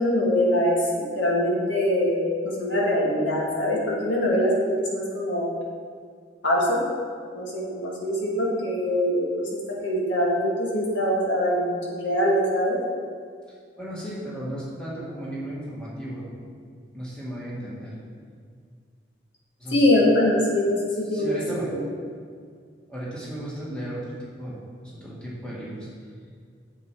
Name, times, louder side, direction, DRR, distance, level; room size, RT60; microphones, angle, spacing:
voice 1, 0.0-5.5 6.4-6.8 7.3-12.8 19.7-21.8, left 1 dB, 75° left, -4 dB, 1.9 m, -23 dB
voice 2, 13.8-16.3 16.9-17.9 19.6-19.9 21.0-22.0 22.9-25.9, right 1 dB, 5° left, -7 dB, 1.9 m, -35 dB
7.2 x 6.8 x 4.7 m, 2.1 s
head